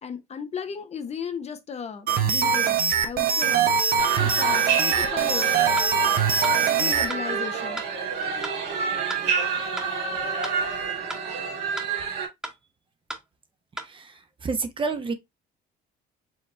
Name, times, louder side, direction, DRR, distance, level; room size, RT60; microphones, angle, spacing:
voice 1, 0.0-3.7 4.2-5.5 6.7-7.8, left 6 dB, 40° left, 0.9 m, -35 dB
sound 1, 2.1-7.1, right 6 dB, 60° right, 0.8 m, -22 dB
sound 2, 4.0-12.3, right 6 dB, 85° right, 2.1 m, -28 dB
sound 3, 5.8-5.9 6.4-6.6 7.1-7.2 7.8-7.9 8.4-8.6 9.1-9.2 9.8-9.9 10.4-10.6 11.1-11.2 11.8-11.9 12.4-12.6 13.1-13.2 13.8-13.9, right 1 dB, 5° right, 1.2 m, -35 dB
voice 2, 14.4-15.1, right 4 dB, 30° right, 0.8 m, -28 dB
4.7 x 3.0 x 3.2 m
cardioid pair, 110°, 17 cm